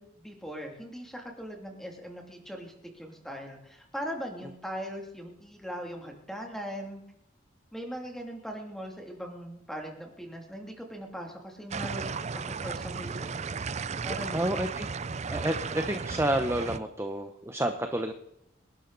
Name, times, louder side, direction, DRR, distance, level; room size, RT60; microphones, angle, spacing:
voice 1, 0.0-7.0 7.7-13.4 14.0-14.5, equal, ahead, 1 dB, 2.8 m, -40 dB
sound 1, 11.7-16.8, right 5 dB, 35° right, 0.5 m, -35 dB
voice 2, 14.3-14.9 15.3-18.1, right 1 dB, 15° right, 6 dB, 0.9 m, -29 dB
26.5 x 11.5 x 4.1 m, 0.77 s
head